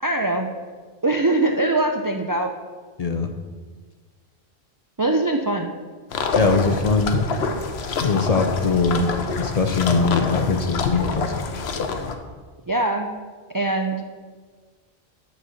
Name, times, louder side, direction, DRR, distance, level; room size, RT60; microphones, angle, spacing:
voice 1, 0.0-0.5 1.0-2.5 5.0-5.7 12.7-13.1 13.5-14.0, right 2 dB, 35° right, 3 dB, 0.3 m, -22 dB
voice 2, 3.0-3.3 6.3-7.2 7.9-11.6, left 4 dB, 45° left, 5 dB, 0.6 m, -22 dB
sound 1, 6.1-12.1, left 4 dB, 90° left, 1.0 m, -26 dB
9.1 x 4.3 x 6.3 m, 1.5 s
omnidirectional pair, 1.0 m